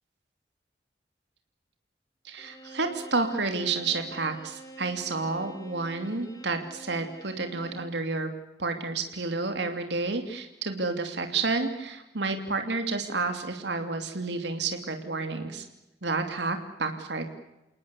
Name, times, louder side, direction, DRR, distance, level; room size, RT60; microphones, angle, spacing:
voice 1, 2.2-8.3 8.6-15.6 16.0-17.2, right 3 dB, 75° right, 6 dB, 3.0 m, -30 dB
Bowed string instrument, 2.4-8.0, right 2 dB, 20° left, 3.4 m, -47 dB
29.0 x 19.5 x 8.4 m, 0.94 s
head